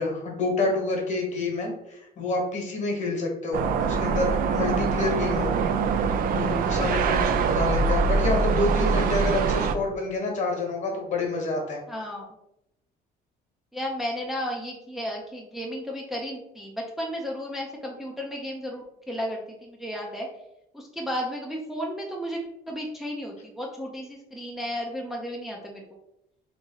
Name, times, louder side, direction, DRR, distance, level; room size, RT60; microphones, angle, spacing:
voice 1, 0.0-5.7 6.3-11.8, left 2 dB, 45° left, 1 dB, 1.2 m, -28 dB
sound 1, 3.5-9.8, right 5 dB, 60° right, 0.4 m, -24 dB
voice 2, 11.9-12.3 13.7-20.3 20.7-22.4 22.7-25.8, equal, ahead, -2 dB, 0.5 m, -33 dB
3.1 x 2.6 x 3.8 m, 0.84 s
cardioid pair, 110°, 17 cm